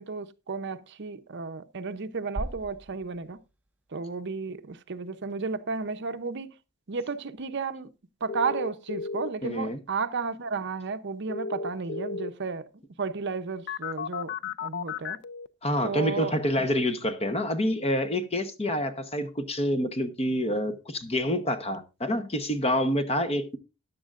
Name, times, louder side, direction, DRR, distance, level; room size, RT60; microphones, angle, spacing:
voice 1, 0.0-3.4 3.9-6.5 6.9-7.9 8.2-12.7 13.0-15.2 15.8-16.7, right 4 dB, 55° right, 0.7 m, -33 dB
sound 1, 2.4-4.4, right 1 dB, 5° right, 0.5 m, -40 dB
sound 2, 8.3-9.3 11.3-12.3 13.7-15.5, left 5 dB, 50° left, 0.5 m, -33 dB
voice 2, 9.4-9.8 15.6-23.6, left 1 dB, 30° left, 0.9 m, -27 dB
14.0 x 10.5 x 2.5 m
head